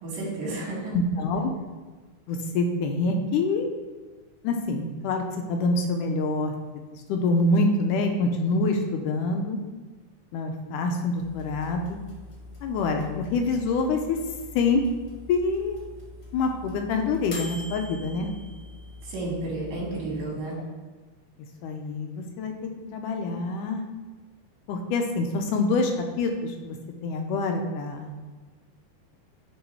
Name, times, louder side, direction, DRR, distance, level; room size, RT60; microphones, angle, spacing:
voice 1, 0.0-1.0 19.0-20.6, right 2 dB, 80° right, -4 dB, 3.6 m, -32 dB
voice 2, 0.9-1.5 2.3-3.7 4.4-6.8 7.1-9.6 10.3-12.0 12.6-14.2 14.6-14.8 15.3-15.8 16.3-18.3 21.6-22.5 22.9-23.8 24.7-25.9 26.2-26.8 27.0-28.1, left 3 dB, 80° left, 4 dB, 2.1 m, -26 dB
sound 1, 11.2-20.2, left 2 dB, 45° left, 1.5 m, -43 dB
9.4 x 3.7 x 4.5 m, 1.3 s
omnidirectional pair, 3.9 m